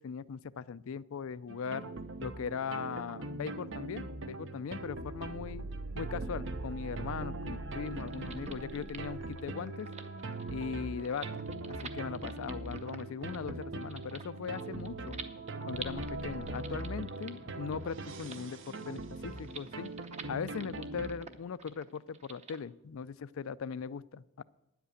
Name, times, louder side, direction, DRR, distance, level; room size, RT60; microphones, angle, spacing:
voice 1, 0.0-1.9 2.2-5.6 5.9-9.9 10.5-11.4 11.8-15.2 15.6-19.9 20.3-24.4, left 6 dB, 75° left, 18 dB, 0.4 m, -39 dB
sound 1, 1.5-21.1, right 2 dB, 65° right, 0.9 m, -41 dB
sound 2, 7.8-22.6, right 5 dB, 30° right, 0.8 m, -50 dB
10.0 x 8.0 x 8.3 m, 0.87 s
head